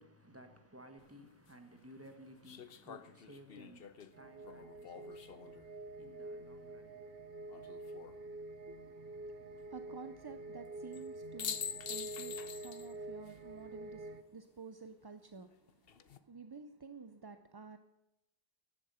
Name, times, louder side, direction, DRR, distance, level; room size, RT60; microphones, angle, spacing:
voice 1, 0.0-8.5, equal, 15° right, 1.6 m, -58 dB
sound 1, 1.0-1.1 2.4-5.7 7.5-8.2 10.9-11.1 11.4-12.9 13.3-13.4 15.7-16.2, left 8 dB, 70° left, 1.0 m, -45 dB
sound 2, 4.1-14.2, right 2 dB, 70° right, 1.0 m, -48 dB
voice 2, 8.7-17.8, right 4 dB, 30° right, 0.5 m, -51 dB
14.0 x 11.0 x 5.6 m
omnidirectional pair, 1.0 m